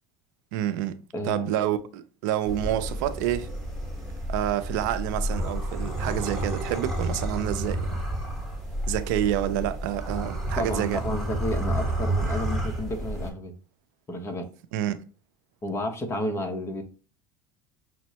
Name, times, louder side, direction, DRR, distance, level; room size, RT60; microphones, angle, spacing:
voice 1, 0.5-3.5 4.3-8.0 8.9-11.0 14.7-15.0, right 12 dB, 80° right, 0.5 m, -28 dB
voice 2, 1.1-1.5 10.6-13.5 14.1-14.5 15.6-16.8, left 1 dB, 25° left, 0.9 m, -31 dB
sound 1, 2.5-13.3, right 1 dB, ahead, 1.2 m, -30 dB
6.1 x 2.1 x 2.8 m
supercardioid pair, 110°, 10 cm